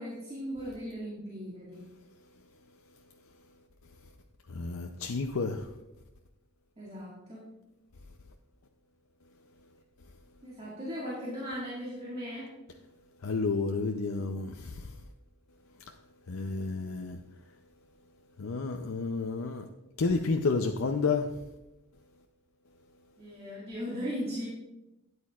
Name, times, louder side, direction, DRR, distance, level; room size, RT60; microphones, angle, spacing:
voice 1, 0.0-1.9 6.8-7.5 10.4-12.6 23.2-24.5, equal, 30° right, 2.1 m, -38 dB
voice 2, 4.5-5.7 13.2-15.0 16.3-17.2 18.4-19.7 20.0-21.3, left 4 dB, 90° left, 0.6 m, -30 dB
12.5 x 9.6 x 2.4 m
head